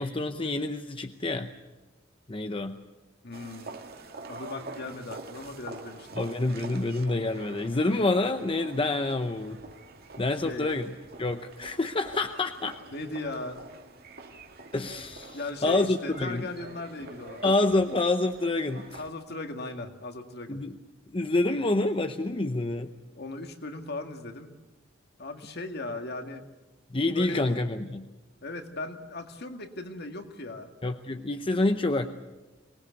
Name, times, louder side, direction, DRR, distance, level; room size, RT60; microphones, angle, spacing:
voice 1, 0.0-1.5 2.3-2.8 6.2-9.6 10.2-10.9 11.2-12.8 14.7-16.5 17.4-19.0 20.5-20.8 21.1-22.9 26.9-28.1 30.8-32.1, left 2 dB, 25° left, 8 dB, 0.7 m, -27 dB
voice 2, 3.2-3.7 4.3-6.2 10.4-10.7 12.9-13.6 15.3-17.4 19.0-20.6 23.2-24.5 25.2-26.5 27.1-27.5 28.4-30.7, left 2 dB, 55° left, 6 dB, 2.0 m, -38 dB
sound 1, 3.3-19.1, right 3 dB, 55° right, 2.1 m, -45 dB
24.0 x 19.5 x 8.2 m, 1.1 s
head